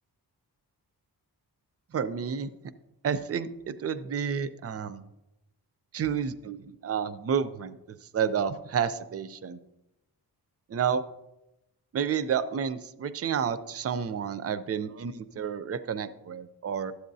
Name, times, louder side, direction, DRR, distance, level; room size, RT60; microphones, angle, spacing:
voice 1, 1.9-2.5 3.0-5.0 5.9-9.6 10.7-11.0 11.9-16.9, right 7 dB, 40° right, 13 dB, 0.4 m, -30 dB
13.0 x 8.0 x 2.7 m, 0.93 s
wide cardioid pair, 110°, 39 cm